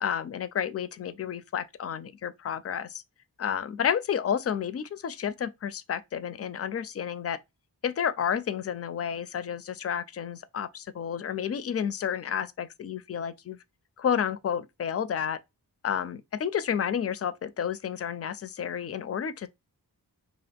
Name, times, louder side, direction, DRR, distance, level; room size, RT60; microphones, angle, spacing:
voice 1, 0.0-3.0 3.4-7.4 7.8-13.6 14.0-15.4 15.8-19.5, left 8 dB, 40° left, 0.4 m, -31 dB
2.5 x 2.4 x 3.4 m
cardioid pair, 45°, 40 cm